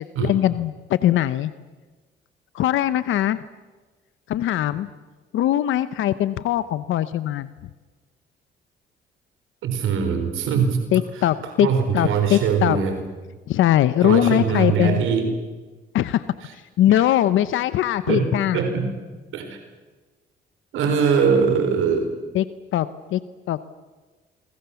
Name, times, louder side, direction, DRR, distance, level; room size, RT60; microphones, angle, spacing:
voice 1, 0.0-1.5 2.5-3.4 4.3-4.9 5.3-7.5 10.9-11.7 11.9-12.8 13.5-15.1 15.9-16.2 16.8-18.6 22.3-22.5 22.7-23.2 23.5-23.7, left 12 dB, 80° left, 14 dB, 0.9 m, -21 dB
voice 2, 9.6-10.8 11.6-13.0 14.0-15.3 17.0-17.1 18.1-18.9 19.3-19.6 20.7-22.1, right 6 dB, 85° right, 6 dB, 4.2 m, -22 dB
27.0 x 24.0 x 7.1 m, 1.3 s
cardioid pair, 90°, 20 cm